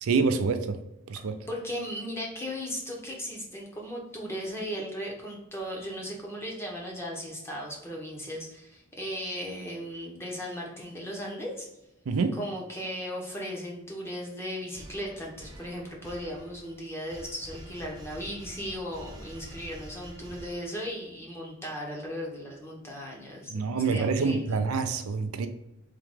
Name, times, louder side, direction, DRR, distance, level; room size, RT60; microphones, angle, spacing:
voice 1, 0.0-0.8 1.1-1.4 12.1-12.4 23.5-25.5, right 4 dB, 90° right, 8 dB, 0.5 m, -26 dB
voice 2, 1.5-11.7 12.3-23.5 23.8-24.5, equal, 10° left, -2 dB, 0.8 m, -37 dB
sound 1, 14.7-21.1, right 1 dB, 20° right, 0.5 m, -47 dB
3.7 x 2.9 x 3.6 m, 0.88 s
head